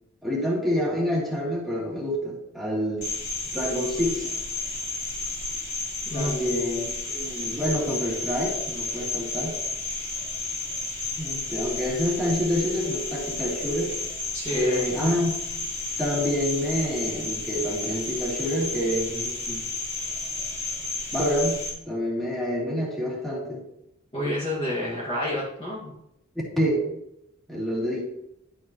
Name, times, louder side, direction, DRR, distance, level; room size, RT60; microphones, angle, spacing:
voice 1, 0.2-3.1 3.5-4.3 6.1-9.6 11.2-13.9 14.5-15.3 16.0-19.7 21.1-21.6 21.8-23.6 26.6-26.8 27.5-28.1, equal, ahead, -5 dB, 3.1 m, -27 dB
Cricket, 3.0-21.7, left 3 dB, 45° left, 3.6 m, -32 dB
voice 2, 6.1-6.4 14.3-15.1 24.1-25.9, left 1 dB, 25° left, -6 dB, 2.1 m, -29 dB
11.5 x 8.9 x 3.1 m, 0.83 s
head